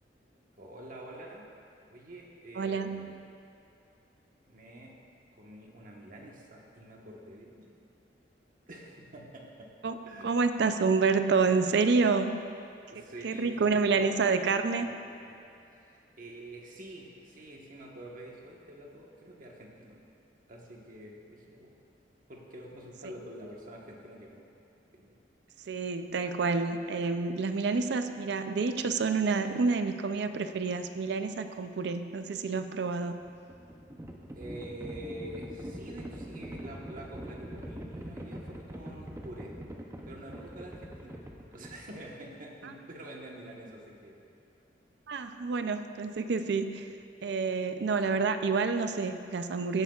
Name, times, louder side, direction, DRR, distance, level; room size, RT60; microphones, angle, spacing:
voice 1, 0.6-1.5 1.9-3.2 4.5-4.9 5.3-7.7 8.7-9.7 10.0-10.6 12.9-14.2 14.8-15.4 15.6-20.0 20.5-21.7 22.3-24.4 24.9-25.2 34.3-39.6 40.0-44.2 47.5-47.6, right 1 dB, 50° right, -1 dB, 1.2 m, -47 dB
voice 2, 2.6-3.1 9.8-10.0 10.2-12.4 13.2-14.9 25.7-33.2 45.1-46.9 47.2-49.8, right 4 dB, 65° right, 9 dB, 0.4 m, -28 dB
Livestock farm animals working animals, 33.2-42.2, right 1 dB, 15° right, 0.6 m, -43 dB
15.5 x 8.1 x 2.4 m, 2.7 s
head